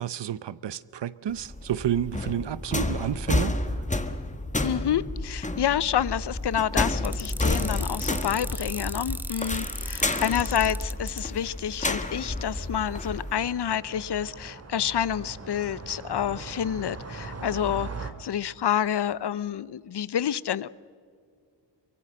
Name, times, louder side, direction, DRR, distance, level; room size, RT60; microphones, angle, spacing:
voice 1, 0.0-3.8, right 10 dB, 65° right, 0.8 m, -30 dB
sound 1, 1.3-13.3, left 2 dB, 15° left, 1.3 m, -30 dB
voice 2, 4.6-20.7, left 9 dB, 60° left, 0.7 m, -28 dB
sound 2, 7.0-11.2, right 1 dB, 5° right, 0.8 m, -37 dB
sound 3, 9.8-18.1, right 4 dB, 35° right, 2.1 m, -41 dB
24.0 x 23.0 x 6.4 m
wide cardioid pair, 100°, 45 cm